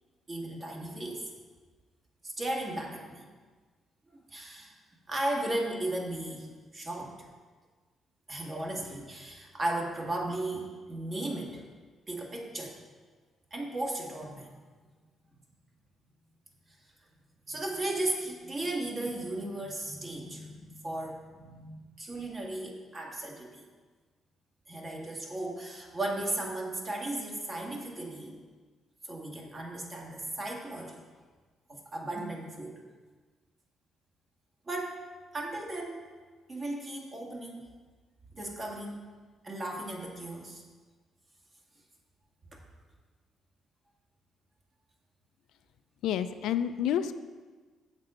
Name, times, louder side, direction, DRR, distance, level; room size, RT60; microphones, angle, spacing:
voice 1, 0.3-1.3 2.2-3.2 4.1-4.7 5.1-7.3 8.3-11.7 12.1-12.8 13.5-14.5 17.5-21.7 22.0-23.6 24.7-28.4 29.0-31.0 31.7-32.8 34.7-35.0 35.3-36.1 36.5-37.7 38.3-39.0 39.4-40.6 42.5-42.6, right 1 dB, 35° right, 0 dB, 1.9 m, -36 dB
voice 2, 46.0-47.1, left 10 dB, 85° left, 10 dB, 0.4 m, -29 dB
7.4 x 7.4 x 5.1 m, 1.4 s
cardioid pair, 90°, 0 cm